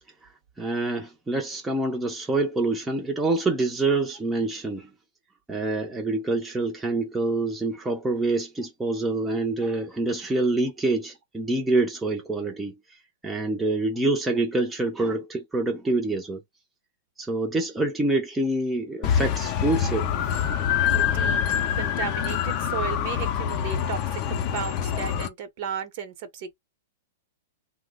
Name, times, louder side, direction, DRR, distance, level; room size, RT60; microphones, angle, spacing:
voice 1, 0.6-4.9 5.5-12.7 13.2-16.4 17.2-20.2, right 2 dB, 5° right, 0.5 m, -26 dB
sound 1, 19.0-25.3, left 9 dB, 40° left, 0.5 m, -25 dB
voice 2, 20.9-26.6, right 7 dB, 50° right, 0.8 m, -35 dB
2.8 x 2.0 x 3.6 m
hypercardioid pair, 145°, 0 cm